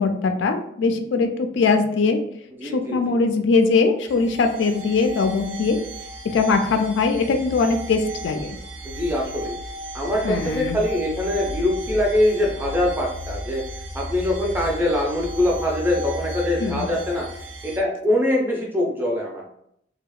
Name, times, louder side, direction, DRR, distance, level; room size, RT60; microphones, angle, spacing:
voice 1, 0.0-2.2 2.6-5.8 6.3-8.6 10.2-10.8 16.6-16.9, left 4 dB, 75° left, 6 dB, 0.3 m, -21 dB
voice 2, 2.6-3.2 8.8-9.6 9.9-13.6 13.9-17.3 17.6-19.4, left 1 dB, 10° right, -1 dB, 0.5 m, -23 dB
sound 1, 4.1-17.8, equal, 85° right, 0.5 m, -35 dB
2.8 x 2.0 x 2.2 m, 0.73 s
head